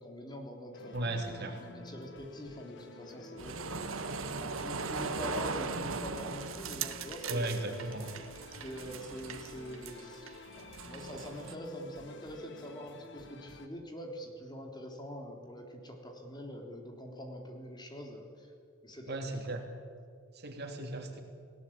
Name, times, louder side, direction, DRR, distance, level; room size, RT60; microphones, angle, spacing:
voice 1, 0.0-4.1 4.3-7.7 8.6-18.5 18.8-19.2 19.5-19.6, equal, 20° left, 2 dB, 3.5 m, -44 dB
sound 1, 0.7-13.7, left 2 dB, 60° left, 1.9 m, -51 dB
voice 2, 0.9-1.6 7.3-8.1 19.1-19.6 20.3-21.2, right 2 dB, 50° right, 4 dB, 3.4 m, -36 dB
sound 2, 3.4-11.6, right 4 dB, 70° right, 1.5 m, -39 dB
30.0 x 18.5 x 8.8 m, 2.2 s
head